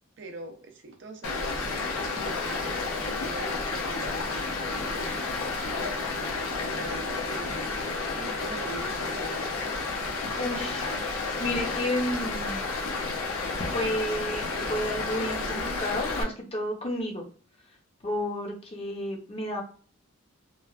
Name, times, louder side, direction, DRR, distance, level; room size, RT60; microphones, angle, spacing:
voice 1, 0.2-1.7 2.0-5.1 6.8-7.6 8.1-9.5, right 3 dB, 55° right, 4 dB, 0.5 m, -43 dB
Stream, 1.2-16.2, left 3 dB, 75° left, 0.6 m, -31 dB
voice 2, 10.4-10.9 11.4-12.6 13.7-17.2 18.0-19.6, left 1 dB, 25° left, 1 dB, 0.6 m, -31 dB
2.9 x 2.1 x 2.4 m, 0.41 s
head